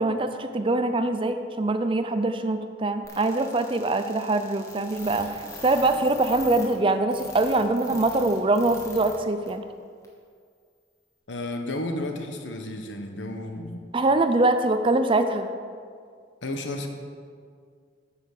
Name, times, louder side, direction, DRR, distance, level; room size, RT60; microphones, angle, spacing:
voice 1, 0.0-9.6 13.9-15.5, right 2 dB, 25° right, 9 dB, 0.4 m, -23 dB
sound 1, 3.0-9.2 9.5-9.6 10.0-10.1, left 2 dB, 15° left, 1.3 m, -42 dB
voice 2, 11.3-13.8 16.4-16.9, left 1 dB, 70° left, 4 dB, 1.1 m, -32 dB
9.8 x 5.7 x 6.6 m, 2.1 s
head